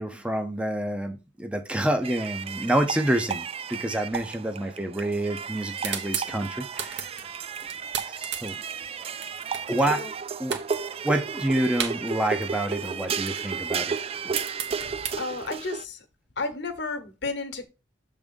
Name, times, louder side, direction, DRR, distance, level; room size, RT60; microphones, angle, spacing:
voice 1, 0.0-7.1 8.0-8.5 9.7-10.0 10.4-10.5 11.0-14.0 14.2-14.3, right 1 dB, 5° right, 0.7 m, -28 dB
sound 1, 2.0-15.8, right 6 dB, 30° right, 0.3 m, -33 dB
sound 2, 5.6-10.2 10.5-12.5 12.8-15.8, right 8 dB, 65° right, 1.1 m, -35 dB
voice 2, 14.8-16.0 16.4-17.7, left 3 dB, 65° left, 1.2 m, -33 dB
7.2 x 3.7 x 5.2 m
head